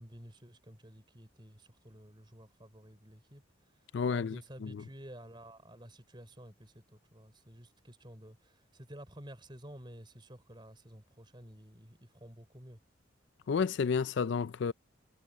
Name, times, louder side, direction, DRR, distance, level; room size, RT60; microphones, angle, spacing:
voice 1, 0.0-3.4 3.7-12.8, right 1 dB, 25° right, 3.9 m, -52 dB
voice 2, 3.9-4.8 13.5-14.7, left 5 dB, 60° left, 0.4 m, -31 dB
head